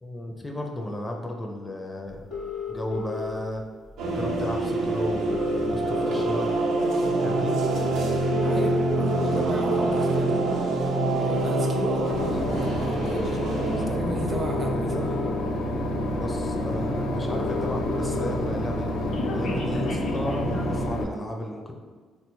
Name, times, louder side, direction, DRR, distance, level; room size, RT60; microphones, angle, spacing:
voice 1, 0.0-2.2 2.7-3.6 4.0-6.5 7.2-7.6 14.7-15.1 16.0-18.9 19.3-21.7, left 1 dB, 20° left, 2 dB, 0.4 m, -34 dB
sound 1, 2.3-3.3 4.5-4.6 4.8-4.9 5.1-6.6 7.1-7.3 8.1-9.3 10.0-10.2 11.1-12.3 13.5-13.6 14.1-15.3 16.0-16.1 16.4-16.5 16.7-16.8 17.0-18.3 18.6-20.8, left 4 dB, 60° left, 0.9 m, -33 dB
sound 2, 4.0-13.9, right 2 dB, 80° right, 0.5 m, -25 dB
voice 2, 8.4-10.4 11.1-15.2, right 1 dB, 35° right, 2 dB, 0.5 m, -34 dB
Boat Water vehicle / Engine, 12.1-21.0, left 1 dB, 85° left, 0.4 m, -28 dB
3.6 x 2.2 x 3.0 m, 1.5 s
cardioid pair, 80°, 0 cm